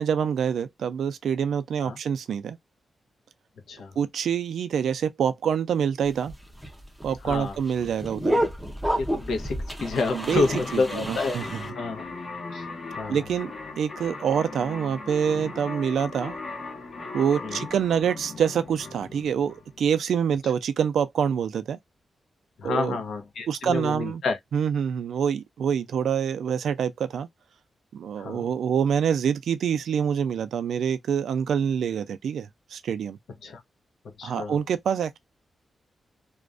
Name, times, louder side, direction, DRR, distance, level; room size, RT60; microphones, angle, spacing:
voice 1, 0.0-2.6 4.0-6.3 7.0-8.5 10.1-11.7 13.1-16.4 17.1-21.8 22.6-23.0 23.5-24.2 24.5-27.3 27.9-33.2 34.2-35.2, right 8 dB, 85° right, 0.3 m, -26 dB
sound 1, 6.1-11.7, equal, 5° right, 0.5 m, -30 dB
voice 2, 9.0-12.1 12.5-12.7 13.0-13.2 17.4-17.6 22.6-24.4 28.2-28.4 33.4-33.6 34.2-34.6, left 4 dB, 85° left, 0.6 m, -29 dB
sound 2, 9.9-20.0, left 3 dB, 50° left, 0.9 m, -38 dB
2.4 x 2.2 x 2.4 m
wide cardioid pair, 155°, 0 cm